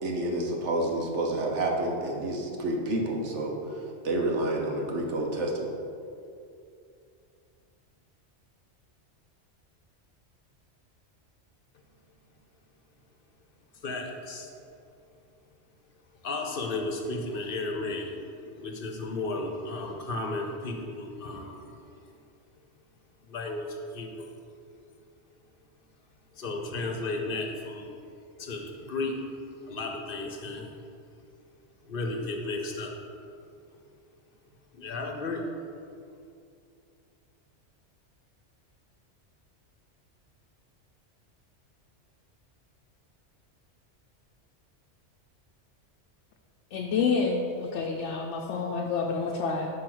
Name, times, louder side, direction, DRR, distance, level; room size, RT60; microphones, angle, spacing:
voice 1, 0.0-5.7, right 1 dB, 75° right, 0 dB, 1.2 m, -29 dB
voice 2, 13.8-14.5 16.2-21.7 23.3-24.3 26.4-27.9 28.4-29.3 29.7-30.7 31.9-32.9 34.7-35.4, left 2 dB, 55° left, 2 dB, 0.9 m, -34 dB
voice 3, 46.7-49.7, left 5 dB, 75° left, 1 dB, 0.9 m, -28 dB
5.5 x 4.8 x 6.0 m, 2.5 s
omnidirectional pair, 1.2 m